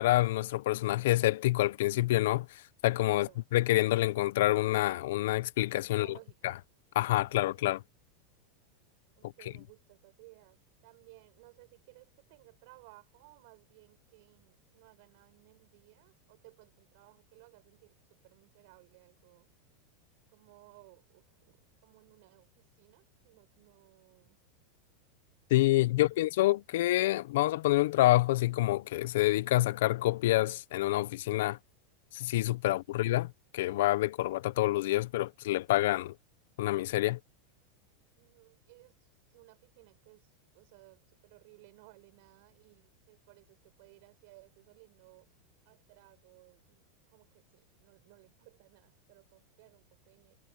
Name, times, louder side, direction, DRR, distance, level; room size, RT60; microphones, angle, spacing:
voice 1, 0.0-6.2 6.4-6.5 7.0-7.8 25.5-31.6 32.1-36.1 36.6-37.2, left 16 dB, 75° left, 0.6 m, -27 dB
voice 2, 3.1-3.4 5.9-6.6 7.3-7.8 9.2-19.5 20.3-24.4 25.9-26.5 32.6-33.0 38.2-45.3 45.7-50.4, right 25 dB, 60° right, 6.9 m, -60 dB
supercardioid pair, 140°, 0 cm